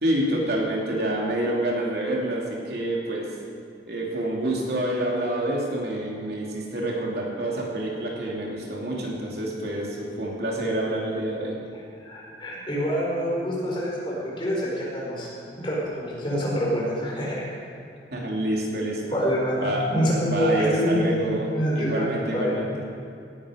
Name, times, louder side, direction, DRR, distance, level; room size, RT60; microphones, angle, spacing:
voice 1, 0.0-3.3 3.9-11.6 18.1-19.2 19.6-19.9 20.2-21.5 21.7-22.8, right 1 dB, 65° right, -3 dB, 3.0 m, -27 dB
voice 2, 12.0-15.3 15.6-17.4 19.1-21.3 21.5-22.5, equal, 30° left, -4 dB, 4.5 m, -26 dB
18.0 x 11.5 x 5.2 m, 2.5 s
head